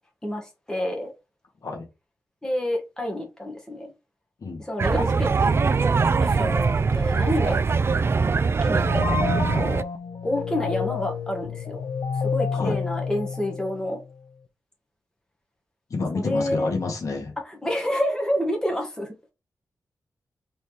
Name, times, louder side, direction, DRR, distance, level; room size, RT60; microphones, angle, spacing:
voice 1, 0.2-1.1 2.4-3.9 4.6-5.6 6.2-7.6 8.6-9.8 10.2-11.8 12.1-14.0 16.1-16.7 17.4-19.1, left 1 dB, 10° left, 1.6 m, -28 dB
sound 1, 4.8-9.8, right 4 dB, 40° right, 0.3 m, -22 dB
sound 2, 8.6-14.0, left 6 dB, 80° left, 0.5 m, -29 dB
voice 2, 15.9-17.3, left 3 dB, 65° left, 1.5 m, -29 dB
4.3 x 3.5 x 3.2 m
wide cardioid pair, 85°, 6 cm